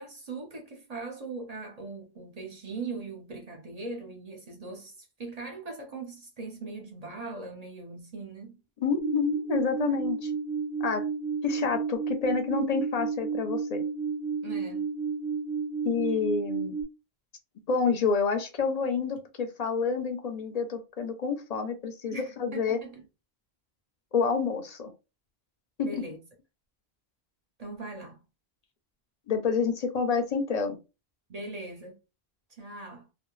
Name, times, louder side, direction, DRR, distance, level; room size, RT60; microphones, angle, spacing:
voice 1, 0.0-4.9 5.2-8.6 14.4-14.9 22.1-23.0 25.8-26.2 27.6-28.2 31.3-32.0 32.6-33.1, right 3 dB, 45° right, 0.7 m, -40 dB
voice 2, 8.8-10.3 10.8-11.1 11.4-13.8 15.8-16.8 17.7-22.8 24.1-24.9 25.8-26.0 29.3-30.8, left 5 dB, 50° left, 0.5 m, -28 dB
sound 1, 9.0-16.8, right 5 dB, 80° left, 0.8 m, -32 dB
2.1 x 2.1 x 3.0 m
omnidirectional pair, 1.1 m